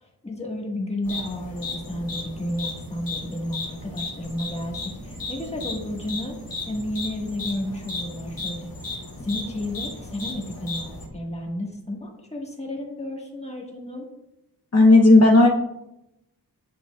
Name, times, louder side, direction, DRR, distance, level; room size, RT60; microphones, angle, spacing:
voice 1, 0.0-6.4 6.7-8.7 9.2-14.1, left 1 dB, 15° left, 0 dB, 1.5 m, -32 dB
sound 1, 1.0-11.1, left 2 dB, 60° left, 1.8 m, -35 dB
voice 2, 14.7-15.5, left 2 dB, 40° left, -1 dB, 0.8 m, -12 dB
9.1 x 6.7 x 2.3 m, 0.87 s
wide cardioid pair, 100°, 39 cm